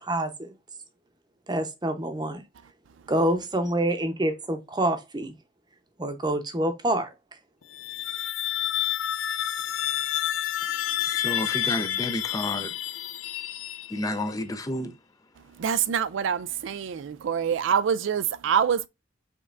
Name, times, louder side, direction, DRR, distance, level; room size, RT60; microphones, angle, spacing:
voice 1, 0.1-0.5 1.5-2.4 3.1-5.3 6.0-7.1, right 1 dB, 20° right, 0.8 m, -26 dB
sound 1, 7.6-14.3, left 11 dB, 80° left, 0.5 m, -29 dB
voice 2, 11.0-12.7 13.9-15.0, left 1 dB, 20° left, 0.5 m, -31 dB
voice 3, 15.6-18.9, right 7 dB, 65° right, 0.4 m, -25 dB
5.2 x 3.5 x 2.5 m
head